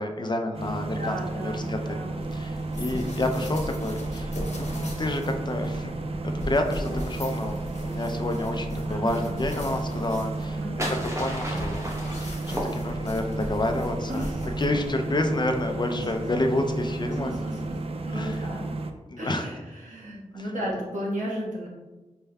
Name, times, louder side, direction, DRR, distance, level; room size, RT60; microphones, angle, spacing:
voice 1, 0.0-2.0 2.3-5.9 6.2-10.6 11.2-11.9 12.1-14.3 14.6-17.3 18.1-18.4 19.1-19.5, left 1 dB, 35° left, 4 dB, 0.4 m, -29 dB
sound 1, 0.5-18.9, right 3 dB, 50° right, 0.4 m, -33 dB
voice 2, 0.9-2.2 8.9-9.4 10.4-10.9 14.1-14.5 15.9-16.1 17.1-18.6 19.2-21.7, equal, 80° right, -6 dB, 1.2 m, -34 dB
sound 2, 2.2-14.9, left 1 dB, 65° left, 1.0 m, -38 dB
sound 3, 10.3-13.3, equal, 20° right, 0.8 m, -34 dB
4.3 x 3.4 x 2.2 m, 1.2 s
wide cardioid pair, 50°, 13 cm